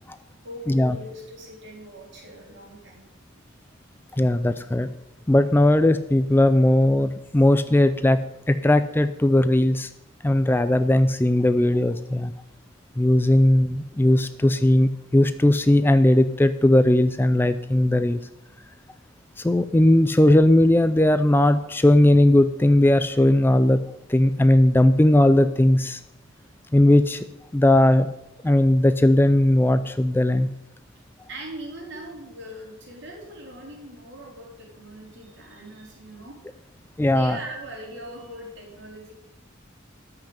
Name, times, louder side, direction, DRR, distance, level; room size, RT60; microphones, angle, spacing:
voice 1, 0.4-3.1 3.9-4.0 31.3-36.6 37.1-39.1, right 1 dB, 60° right, -2 dB, 4.0 m, -40 dB
voice 2, 4.2-4.9 5.3-8.2 8.5-9.9 10.2-12.3 13.0-18.2 19.4-23.8 24.1-26.0 26.7-27.3 27.5-28.1 28.4-30.5 37.0-37.4, left 1 dB, 10° left, 11 dB, 0.4 m, -18 dB
13.0 x 5.9 x 8.7 m, 0.91 s
head